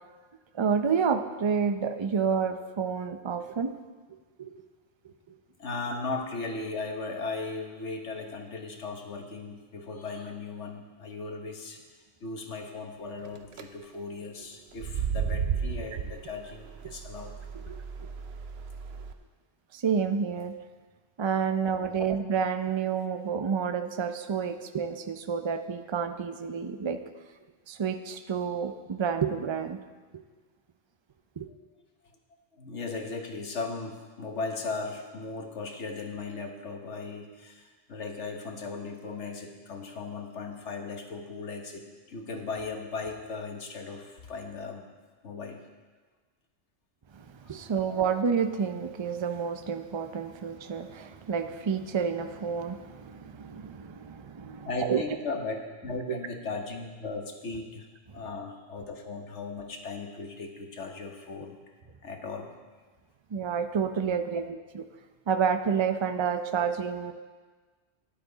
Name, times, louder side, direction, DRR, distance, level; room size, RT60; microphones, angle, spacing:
voice 1, 0.5-3.7 4.4-4.6 17.7-17.8 19.7-20.5 21.2-27.0 27.7-29.8 31.4-31.5 47.1-55.0 58.1-58.2 63.3-64.8 65.3-67.1, right 6 dB, 35° right, 8 dB, 0.4 m, -29 dB
voice 2, 5.6-11.8 12.2-17.3 22.0-22.1 31.5-31.6 32.5-44.9 45.2-45.6 47.5-48.0 54.6-57.9 58.1-61.6 62.0-62.5 64.3-64.4, left 3 dB, 85° left, 3 dB, 1.5 m, -37 dB
sound 1, 13.2-13.6 14.7-19.1, right 7 dB, 65° right, 0.9 m, -34 dB
13.0 x 10.0 x 3.9 m, 1.4 s
omnidirectional pair, 1.2 m